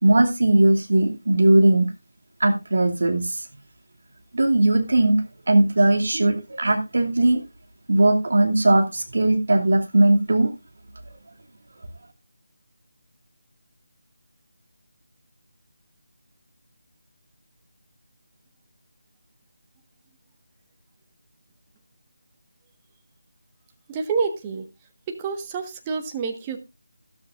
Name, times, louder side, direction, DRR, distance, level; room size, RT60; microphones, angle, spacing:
voice 1, 0.0-1.9 2.4-3.4 4.3-7.4 7.9-10.5, right 2 dB, 55° right, 3 dB, 2.6 m, -19 dB
voice 2, 23.9-24.6 25.1-26.6, right 5 dB, 15° right, 4 dB, 1.4 m, -28 dB
13.0 x 13.0 x 2.5 m, 0.25 s
figure-of-eight pair, 160°, 0 cm